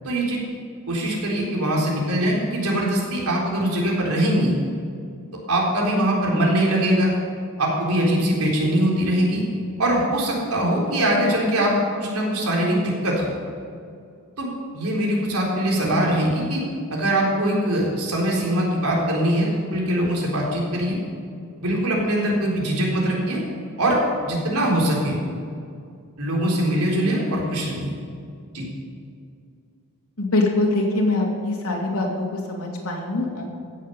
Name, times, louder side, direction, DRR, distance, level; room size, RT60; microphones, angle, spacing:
voice 1, 0.0-0.4 0.9-4.5 5.5-7.1 7.6-9.4 9.8-11.7 12.0-13.3 14.4-14.5 14.7-16.6 16.9-21.0 21.6-23.4 23.8-25.2 26.2-27.9 28.5-28.7, right 1 dB, 85° right, -3 dB, 3.9 m, -22 dB
voice 2, 30.2-33.4, left 2 dB, 80° left, -1 dB, 2.7 m, -23 dB
16.0 x 7.5 x 6.9 m, 2.4 s
head